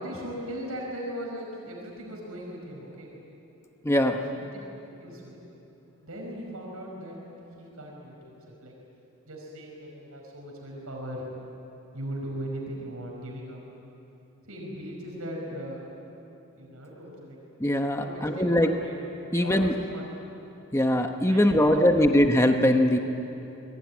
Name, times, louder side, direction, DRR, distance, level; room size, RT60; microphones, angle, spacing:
voice 1, 0.0-3.1 4.1-4.5 4.8-5.4 6.0-7.2 7.6-8.7 9.3-11.2 11.9-13.6 14.4-15.9 16.6-17.4 18.0-19.0 19.3-20.1 21.3-22.1, equal, 85° right, -2 dB, 5.3 m, -38 dB
voice 2, 3.8-4.2 17.6-18.7 19.3-19.7 20.7-23.0, left 1 dB, 10° left, 5 dB, 1.0 m, -21 dB
26.5 x 21.5 x 9.6 m, 3.0 s
head